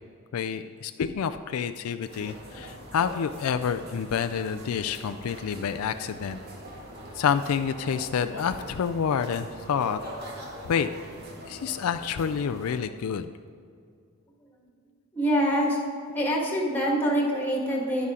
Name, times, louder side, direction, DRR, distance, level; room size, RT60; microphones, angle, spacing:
voice 1, 0.3-6.4 7.2-10.0 10.7-10.9 11.5-13.3, left 7 dB, 75° left, 9 dB, 0.4 m, -28 dB
sound 1, 2.0-12.8, right 1 dB, 45° right, 1.9 m, -43 dB
voice 2, 15.1-15.8 16.1-18.1, equal, 10° left, -2 dB, 1.8 m, -25 dB
11.0 x 9.7 x 3.7 m, 2.3 s
head